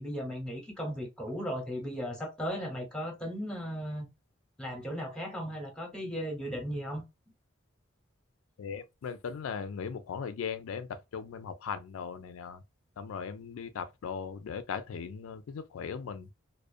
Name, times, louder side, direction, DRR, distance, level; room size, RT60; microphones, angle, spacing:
voice 1, 0.0-4.1 4.6-7.0, equal, 5° left, 0.7 m, -36 dB
voice 2, 8.6-12.6 13.0-16.3, left 6 dB, 90° left, 0.4 m, -38 dB
2.4 x 2.1 x 2.4 m
head